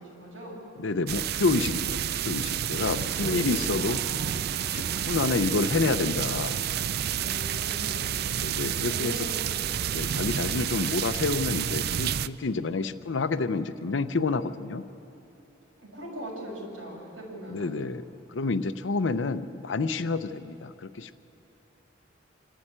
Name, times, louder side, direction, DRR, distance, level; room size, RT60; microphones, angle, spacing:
voice 1, 0.0-0.6 2.7-5.1 7.1-8.1 8.8-9.7 15.8-17.8, right 1 dB, 85° right, -4 dB, 6.9 m, -41 dB
voice 2, 0.8-4.0 4.7-6.6 8.4-9.3 9.9-14.8 17.5-18.0 18.3-21.2, left 3 dB, 70° left, 11 dB, 0.6 m, -29 dB
sound 1, 1.1-12.3, right 9 dB, 55° right, 0.4 m, -30 dB
26.0 x 12.5 x 8.8 m, 2.9 s
head